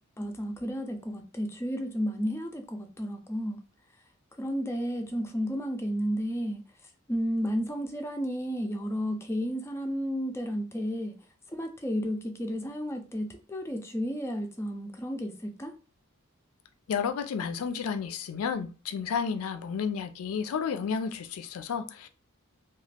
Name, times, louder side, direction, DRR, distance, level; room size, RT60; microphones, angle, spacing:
voice 1, 0.2-3.6 4.4-6.6 7.1-11.1 11.5-15.8, equal, 10° left, 0.4 m, -32 dB
voice 2, 16.9-22.1, left 6 dB, 80° left, 0.4 m, -31 dB
2.4 x 2.3 x 3.3 m
head